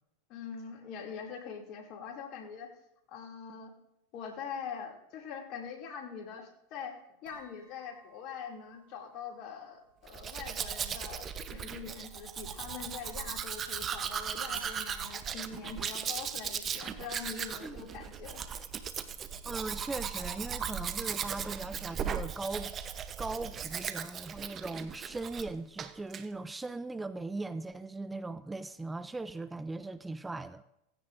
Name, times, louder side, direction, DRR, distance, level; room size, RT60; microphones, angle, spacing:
voice 1, 0.3-2.7 3.1-3.7 4.1-18.4, left 6 dB, 50° left, 2.6 m, -43 dB
sound 1, 7.3-12.8 14.5-19.5, right 6 dB, 80° right, 3.6 m, -59 dB
Domestic sounds home sounds, 10.1-25.5 25.8-26.2, right 7 dB, 30° right, 0.8 m, -37 dB
voice 2, 19.4-22.7 23.2-30.6, right 3 dB, 10° right, 0.4 m, -39 dB
17.0 x 16.0 x 2.6 m
hypercardioid pair, 105°, 0 cm